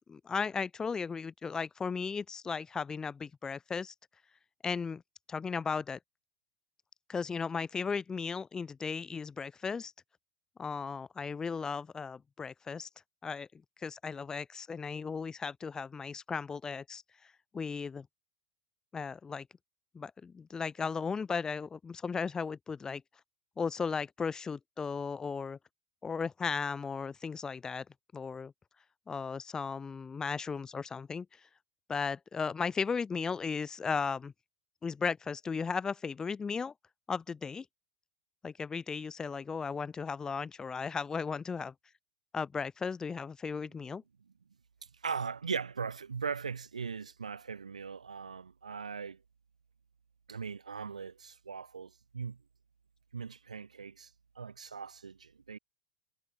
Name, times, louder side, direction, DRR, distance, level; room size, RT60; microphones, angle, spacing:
voice 1, 0.1-3.9 4.6-5.0 5.3-6.0 7.1-9.9 10.6-12.9 13.2-13.5 13.8-17.0 17.5-18.1 18.9-19.5 19.9-23.0 23.6-25.6 26.0-27.9 28.1-28.5 29.1-31.3 31.9-34.3 34.8-36.7 37.1-37.7 38.4-41.7 42.3-44.0, left 5 dB, 20° left, 0.5 m, -36 dB
voice 2, 44.9-49.2 50.3-52.4 53.1-55.6, right 5 dB, 90° right, 0.6 m, -39 dB
hypercardioid pair, 90°, 4 cm